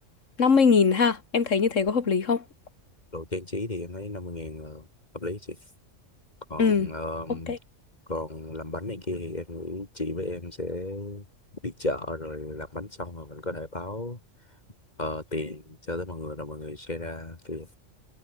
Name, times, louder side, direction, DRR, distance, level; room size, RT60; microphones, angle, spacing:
voice 1, 0.4-2.4 6.6-6.9 7.5-7.6, left 5 dB, 90° left, 2.2 m, -21 dB
voice 2, 3.1-4.9 5.1-5.6 6.5-7.5 8.1-11.2 11.6-14.2 15.0-17.7, left 2 dB, 35° left, 2.6 m, -34 dB
omnidirectional pair, 1.3 m